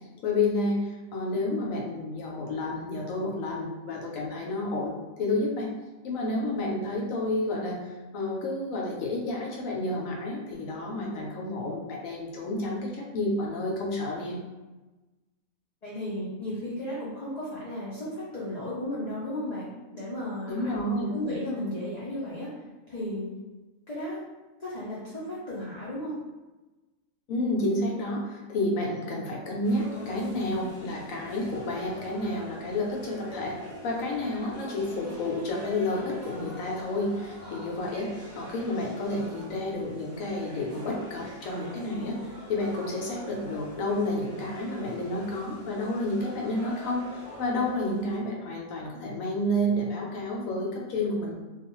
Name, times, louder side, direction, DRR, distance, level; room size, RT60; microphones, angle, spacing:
voice 1, 0.2-5.7 6.0-14.4 20.5-21.1 27.3-33.6 33.8-42.2 42.5-51.3, left 1 dB, 80° left, -1 dB, 1.0 m, -30 dB
voice 2, 15.8-19.7 19.9-22.5 22.9-23.3 23.9-24.2 24.6-26.2, left 1 dB, 45° left, -9 dB, 0.5 m, -34 dB
sound 1, 29.6-48.2, equal, 20° right, 0.4 m, -45 dB
2.4 x 2.3 x 2.9 m, 1.2 s
omnidirectional pair, 1.4 m